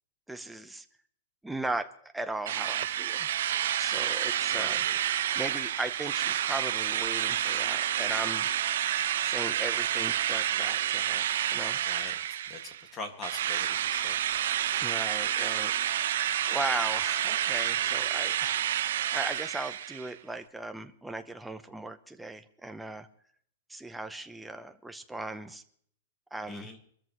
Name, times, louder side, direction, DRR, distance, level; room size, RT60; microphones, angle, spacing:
voice 1, 0.3-0.8 1.4-3.3 3.7-4.8 5.2-8.5 9.2-11.8 14.7-23.1 23.7-25.6 26.3-26.7, right 2 dB, 5° right, 8 dB, 0.8 m, -38 dB
Drill, 2.5-12.8 13.2-20.1, right 11 dB, 65° right, 0.8 m, -29 dB
voice 2, 4.5-5.0 11.8-12.1 12.5-14.2 26.5-26.8, left 3 dB, 20° left, 6 dB, 1.9 m, -42 dB
24.5 x 13.5 x 3.1 m, 0.62 s
supercardioid pair, 170°, 0 cm